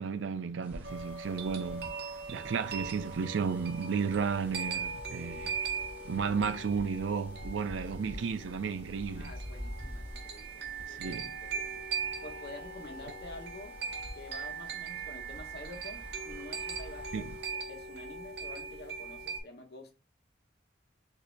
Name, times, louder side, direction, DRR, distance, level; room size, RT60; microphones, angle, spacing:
voice 1, 0.0-1.9 2.3-5.6 6.1-9.3 10.9-11.4 17.1-17.3, right 6 dB, 90° right, 0.4 m, -33 dB
sound 1, 0.6-17.5, equal, 10° right, 1.0 m, -48 dB
sound 2, 0.8-19.4, right 5 dB, 55° right, 0.7 m, -40 dB
voice 2, 9.1-11.9 12.2-13.7 14.1-19.9, left 2 dB, 60° left, 1.2 m, -49 dB
6.5 x 2.7 x 2.2 m
head